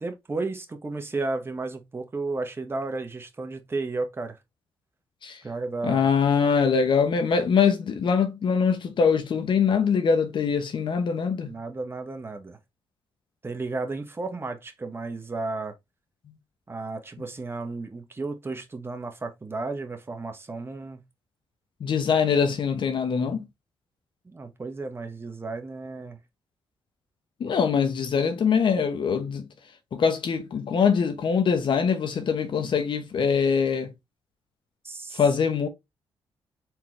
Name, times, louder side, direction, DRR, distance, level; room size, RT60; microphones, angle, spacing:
voice 1, 0.0-4.4 5.4-6.1 11.4-12.6 13.4-15.7 16.7-21.0 24.2-26.2 34.8-35.2, right 3 dB, 25° right, 1.2 m, -33 dB
voice 2, 5.8-11.6 21.8-23.4 27.4-29.5 29.9-33.9 35.1-35.7, left 6 dB, 60° left, 0.9 m, -23 dB
4.5 x 3.7 x 3.1 m
cardioid pair, 80°, 9 cm